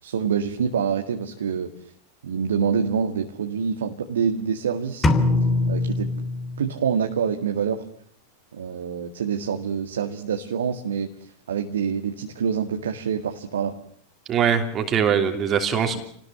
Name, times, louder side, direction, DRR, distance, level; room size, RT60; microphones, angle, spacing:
voice 1, 0.0-1.7 2.2-5.1 5.7-6.1 6.6-7.8 8.5-13.8 15.9-16.0, right 7 dB, 65° right, 4 dB, 2.0 m, -26 dB
sound 1, 5.0-6.9, left 2 dB, 15° left, 2.8 m, -22 dB
voice 2, 14.3-16.0, right 7 dB, 30° right, 5 dB, 3.1 m, -22 dB
29.5 x 19.5 x 6.8 m, 0.64 s
figure-of-eight pair, 90°, 0 cm